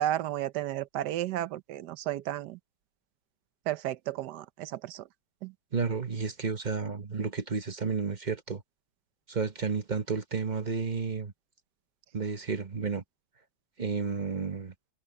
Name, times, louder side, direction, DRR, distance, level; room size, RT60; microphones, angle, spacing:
voice 1, 0.0-2.6 3.7-5.1 5.4-5.5, right 13 dB, 80° right, 1.3 m, -33 dB
voice 2, 5.7-8.6 9.3-11.3 12.1-13.0 13.8-14.7, right 5 dB, 35° right, 0.9 m, -31 dB
omnidirectional pair, 1.8 m